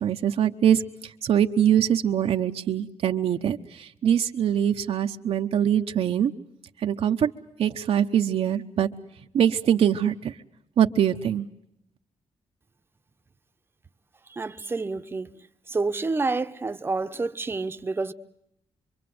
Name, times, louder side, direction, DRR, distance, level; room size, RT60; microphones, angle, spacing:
voice 1, 0.0-6.3 6.8-7.3 7.6-8.9 9.3-10.3 10.8-11.5, right 9 dB, 70° right, 1.0 m, -23 dB
voice 2, 14.3-15.3 15.7-18.1, right 3 dB, 20° right, 0.9 m, -28 dB
26.5 x 23.5 x 7.8 m
wide cardioid pair, 150°, 11 cm